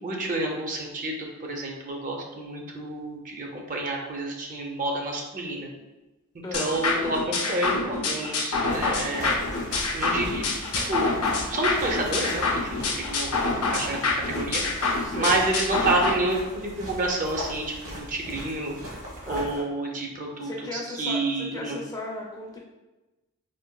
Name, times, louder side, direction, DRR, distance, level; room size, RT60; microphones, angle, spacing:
voice 1, 0.0-5.7 6.5-9.4 9.9-10.5 10.9-11.1 11.5-13.3 13.6-14.8 15.1-18.8 19.3-21.8, right 2 dB, 35° right, 0 dB, 0.5 m, -29 dB
sound 1, 6.5-16.1, left 3 dB, 80° left, 0.5 m, -27 dB
sound 2, 8.7-19.6, equal, 60° right, 1.1 m, -38 dB
voice 2, 15.0-15.4 19.2-19.7 20.4-22.6, left 2 dB, 15° left, -1 dB, 0.3 m, -36 dB
3.8 x 2.2 x 2.2 m, 1.0 s
head